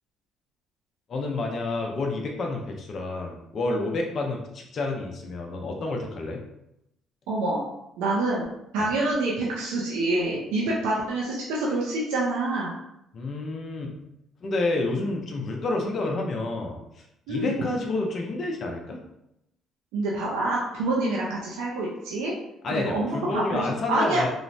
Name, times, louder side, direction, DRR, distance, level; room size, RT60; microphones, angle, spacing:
voice 1, 1.1-6.4 8.8-8.9 13.1-13.9 14.4-16.8 17.3-19.0 22.6-24.3, left 2 dB, 50° left, 0 dB, 0.5 m, -29 dB
voice 2, 7.3-7.6 8.0-8.5 8.7-12.7 17.3-17.6 19.9-22.3 22.7-23.6 23.9-24.2, right 2 dB, 85° right, -4 dB, 0.5 m, -26 dB
3.0 x 2.0 x 2.6 m, 0.82 s
supercardioid pair, 75°, 0 cm